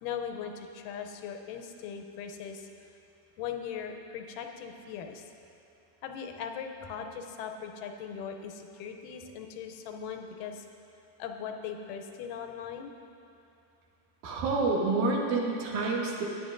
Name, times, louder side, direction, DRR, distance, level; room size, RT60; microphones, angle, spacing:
voice 1, 0.0-2.6 3.4-5.2 6.0-10.6 11.2-12.9, left 7 dB, 80° left, 5 dB, 2.2 m, -39 dB
voice 2, 14.2-16.2, right 3 dB, 70° right, -1 dB, 2.5 m, -28 dB
16.5 x 9.3 x 2.5 m, 2.7 s
omnidirectional pair, 3.9 m